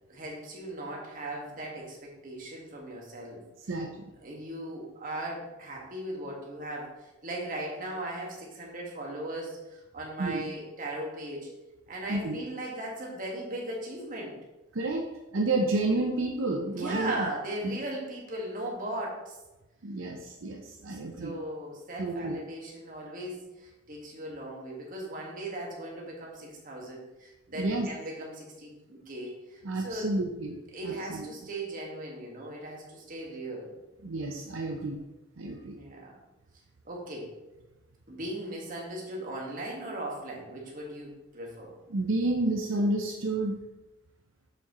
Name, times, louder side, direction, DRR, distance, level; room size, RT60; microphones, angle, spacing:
voice 1, 0.1-3.4 4.2-11.5 11.9-14.4 16.7-19.4 20.9-30.1 30.7-33.7 35.7-36.2 36.8-37.3 38.1-41.7, right 1 dB, 45° right, -2 dB, 1.6 m, -38 dB
voice 2, 3.6-4.1 10.2-10.4 12.1-12.4 14.7-15.1 15.3-17.3 17.6-17.8 19.8-21.4 22.0-22.4 27.6-27.9 29.6-30.6 30.8-31.3 34.0-35.0 35.4-35.8 41.9-43.6, right 2 dB, 80° right, 1 dB, 0.7 m, -30 dB
6.8 x 6.0 x 3.0 m, 1.0 s
head